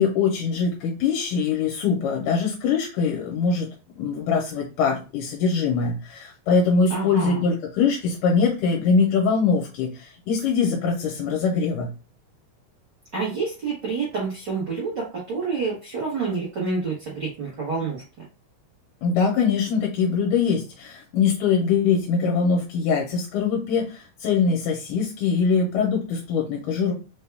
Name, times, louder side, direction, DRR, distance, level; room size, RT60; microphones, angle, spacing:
voice 1, 0.0-3.7 4.0-11.9 19.0-26.9, left 5 dB, 80° left, -1 dB, 2.2 m, -23 dB
voice 2, 6.9-7.4 13.1-18.0, right 4 dB, 75° right, -6 dB, 0.9 m, -28 dB
5.2 x 2.2 x 3.3 m, 0.32 s
omnidirectional pair, 3.9 m